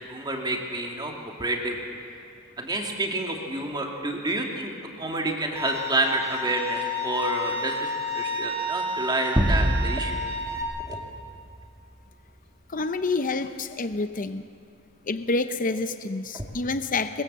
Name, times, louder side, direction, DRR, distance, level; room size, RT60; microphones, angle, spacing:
voice 1, 0.1-1.1 1.4-1.8 2.6-10.2 10.9-11.0, right 2 dB, 20° right, 1 dB, 2.4 m, -29 dB
Bowed string instrument, 5.6-10.6, left 1 dB, 65° right, 4.0 m, -31 dB
sound 1, 9.4-11.9, equal, ahead, 1.4 m, -26 dB
voice 2, 12.7-14.5 15.0-17.2, left 3 dB, 40° left, 9 dB, 0.7 m, -28 dB
22.0 x 22.0 x 7.6 m, 2.4 s
head